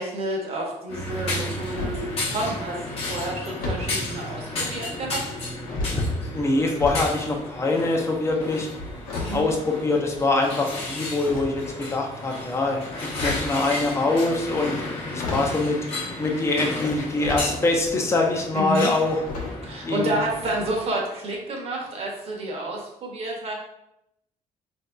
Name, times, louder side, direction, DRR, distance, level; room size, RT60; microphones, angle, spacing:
voice 1, 0.0-5.2 9.3-9.5 18.5-18.9 19.6-23.5, right 1 dB, 50° right, -1 dB, 0.8 m, -30 dB
sound 1, 0.9-20.7, left 2 dB, 45° left, 0.8 m, -33 dB
sound 2, 1.6-2.1 3.6-4.0 4.8-5.3 5.6-7.1 7.4-10.4 11.2-11.9 12.9-13.6 14.7-14.8 15.1-15.6 16.8-17.5 18.0-18.1 19.2-19.8 20.0-20.2 20.5-20.6, left 2 dB, 85° left, 0.8 m, -33 dB
voice 2, 5.9-8.7 9.3-11.6 11.9-14.8 15.1-15.8 16.2-19.2 19.9-20.1, left 2 dB, 20° left, 1 dB, 0.5 m, -24 dB
3.9 x 2.6 x 2.2 m, 0.83 s
cardioid pair, 140°, 14 cm